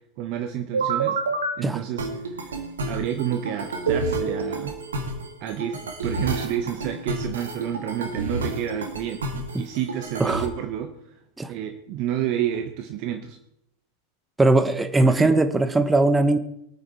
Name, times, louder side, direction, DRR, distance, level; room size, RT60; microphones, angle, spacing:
voice 1, 0.2-1.2 1.6-2.6 2.9-4.7 5.4-10.9 11.5-13.4 15.0-15.3, right 10 dB, 40° right, 6 dB, 1.3 m, -30 dB
sound 1, 0.7-1.5 2.0-10.5, right 3 dB, 65° right, 2.4 m, -29 dB
voice 2, 14.4-16.4, right 2 dB, 10° right, 10 dB, 1.1 m, -19 dB
23.0 x 9.4 x 4.4 m, 0.79 s
figure-of-eight pair, 90°, 0 cm